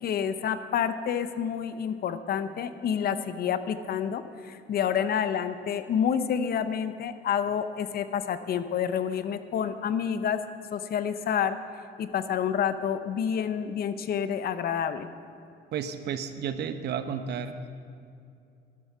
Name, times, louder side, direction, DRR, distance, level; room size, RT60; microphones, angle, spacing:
voice 1, 0.0-10.4 10.7-11.6 12.0-15.1, left 8 dB, 55° left, 12 dB, 0.8 m, -28 dB
voice 2, 15.7-17.6, right 7 dB, 60° right, 10 dB, 1.0 m, -32 dB
12.5 x 12.0 x 6.1 m, 2.5 s
cardioid pair, 110°, 19 cm